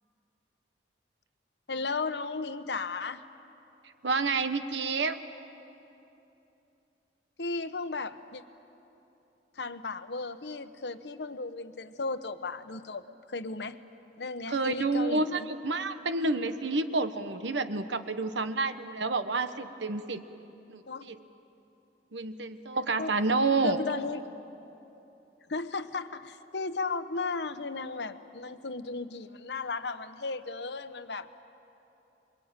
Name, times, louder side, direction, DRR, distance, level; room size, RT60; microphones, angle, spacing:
voice 1, 1.7-3.2 7.4-8.4 9.6-13.8 14.2-15.5 20.9-21.1 23.0-23.2 23.6-24.3 25.5-31.3, left 3 dB, 65° left, 11 dB, 1.0 m, -35 dB
voice 2, 4.0-5.2 14.5-20.2 20.7-21.2 22.1-23.8, right 3 dB, 80° right, 10 dB, 1.2 m, -29 dB
27.0 x 22.5 x 8.9 m, 2.9 s
head